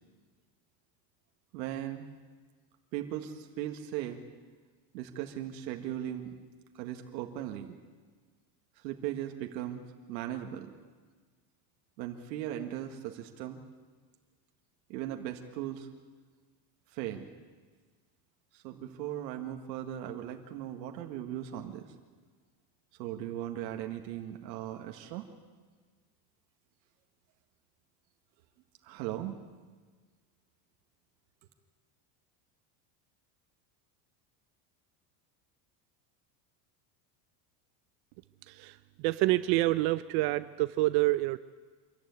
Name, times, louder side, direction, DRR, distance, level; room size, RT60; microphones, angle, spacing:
voice 1, 1.5-2.1 2.9-4.2 4.9-6.4 6.7-7.8 8.8-9.8 10.1-10.7 12.0-13.6 14.9-15.9 16.9-17.3 18.5-21.9 23.0-25.3 28.8-29.4, right 12 dB, 90° right, 4 dB, 1.8 m, -38 dB
voice 2, 38.5-41.4, right 18 dB, 50° right, 14 dB, 0.6 m, -27 dB
25.0 x 14.5 x 9.5 m, 1.5 s
supercardioid pair, 150°, 50 cm